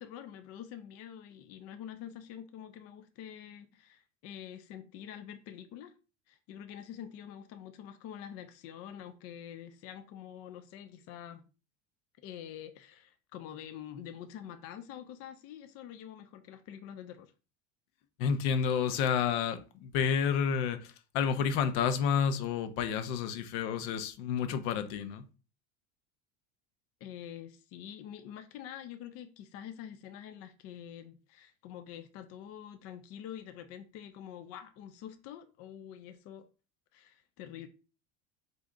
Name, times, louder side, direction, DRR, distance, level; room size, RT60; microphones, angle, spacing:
voice 1, 0.0-5.9 6.3-11.4 12.2-17.3 27.0-36.5 36.9-37.7, left 10 dB, 45° left, 0.5 m, -46 dB
voice 2, 18.2-25.2, left 7 dB, 75° left, 0.8 m, -30 dB
4.4 x 2.7 x 3.6 m
cardioid pair, 145°, 35 cm